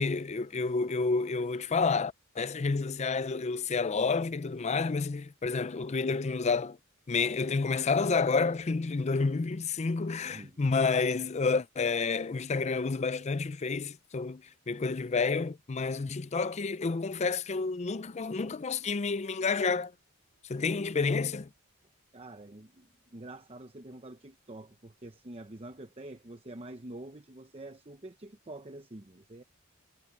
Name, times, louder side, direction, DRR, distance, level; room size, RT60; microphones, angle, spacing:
voice 1, 0.0-6.8 7.1-19.9 20.5-21.5, left 4 dB, 30° left, 0.4 m, -29 dB
voice 2, 10.3-10.6 22.1-29.4, right 1 dB, 25° right, 0.9 m, -46 dB
head